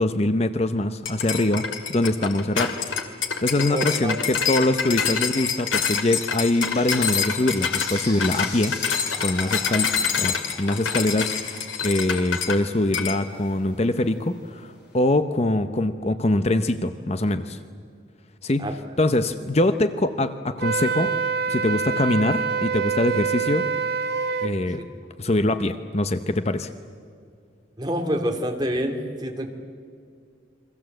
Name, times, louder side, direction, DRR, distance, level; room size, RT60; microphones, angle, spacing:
voice 1, 0.0-3.0 3.4-8.8 9.2-17.6 18.4-21.1 21.5-23.7 24.4-24.9 25.2-26.7, left 1 dB, 35° left, 10 dB, 0.8 m, -23 dB
sound 1, 1.0-12.6 12.9-13.2, left 6 dB, 85° left, 2.4 m, -26 dB
voice 2, 3.7-4.2 18.6-18.7 24.7-24.8 27.8-29.5, equal, 20° right, 3 dB, 2.4 m, -27 dB
sound 2, 6.0-15.1, left 3 dB, 55° left, 5.6 m, -43 dB
Wind instrument woodwind instrument, 20.6-24.5, right 5 dB, 55° right, 1.6 m, -25 dB
29.5 x 23.0 x 7.9 m, 2.2 s
head